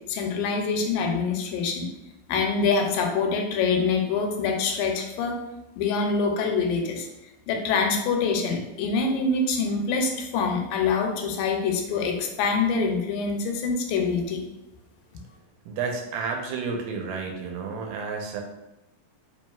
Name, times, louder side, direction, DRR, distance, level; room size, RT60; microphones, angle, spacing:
voice 1, 0.1-1.9 2.3-5.4 5.8-7.1 7.5-14.4, left 4 dB, 90° left, 3 dB, 2.3 m, -25 dB
voice 2, 15.7-18.4, right 5 dB, 85° right, 2 dB, 2.2 m, -31 dB
5.1 x 2.9 x 2.3 m, 0.91 s
omnidirectional pair, 3.9 m